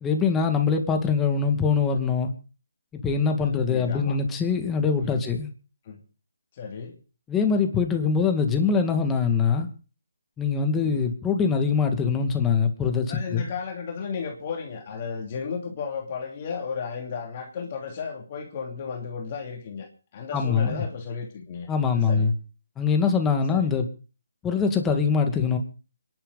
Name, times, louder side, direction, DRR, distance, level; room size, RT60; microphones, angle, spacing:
voice 1, 0.0-2.3 2.9-5.5 7.3-9.7 10.4-13.5 20.3-20.8 21.7-22.3 22.8-23.9 24.4-25.6, left 5 dB, 10° left, 5 dB, 2.0 m, -23 dB
voice 2, 3.3-4.2 5.0-5.2 5.8-6.0 6.5-7.0 10.8-11.1 13.1-19.9 20.1-22.3 23.5-23.7, left 5 dB, 35° left, 1 dB, 3.0 m, -34 dB
26.0 x 11.0 x 4.0 m, 0.37 s
hypercardioid pair, 160°, 0 cm